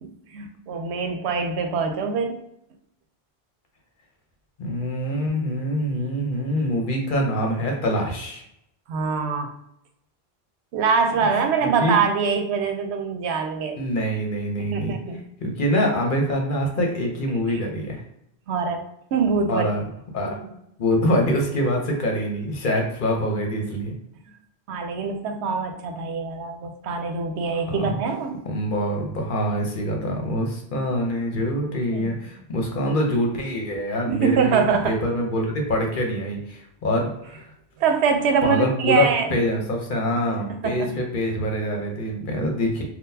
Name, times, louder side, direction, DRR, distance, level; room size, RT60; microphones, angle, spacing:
voice 1, 0.0-2.4 8.9-9.5 10.7-13.8 14.6-15.2 17.5-17.6 18.5-19.7 20.3-20.4 24.7-28.5 31.9-32.2 34.1-35.0 37.8-39.3 40.5-41.0, right 5 dB, 85° right, 5 dB, 0.9 m, -24 dB
voice 2, 4.6-8.4 11.3-11.9 13.7-14.9 15.4-18.0 19.5-19.8 20.1-20.4 20.8-23.9 27.5-28.0 28.4-34.6 34.8-37.5 38.4-42.8, equal, 55° left, 1 dB, 0.8 m, -25 dB
3.7 x 2.2 x 2.7 m, 0.78 s
omnidirectional pair, 1.1 m